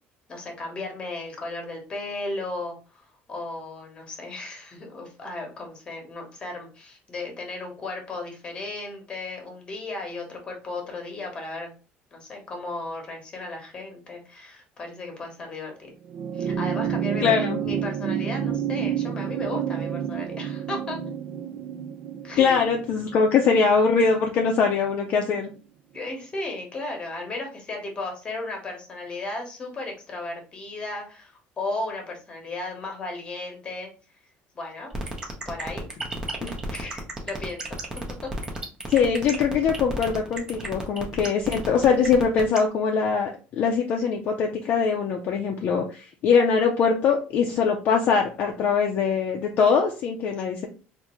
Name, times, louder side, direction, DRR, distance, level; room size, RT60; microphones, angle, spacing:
voice 1, 0.3-11.7 12.1-15.9 16.3-21.0 22.2-22.6 25.9-33.9 34.5-34.9 35.4-35.9 36.4-37.6 38.2-38.3, left 2 dB, 25° left, 2 dB, 1.0 m, -35 dB
sound 1, 16.0-24.7 26.0-26.1, right 8 dB, 55° right, 0.3 m, -30 dB
voice 2, 17.2-17.6 22.4-25.5 36.4-36.5 38.9-50.7, left 5 dB, 45° left, 1 dB, 0.5 m, -22 dB
sound 2, 34.9-42.6, right 2 dB, 15° right, 0.7 m, -33 dB
3.5 x 2.5 x 3.0 m, 0.35 s
cardioid pair, 160°, 4 cm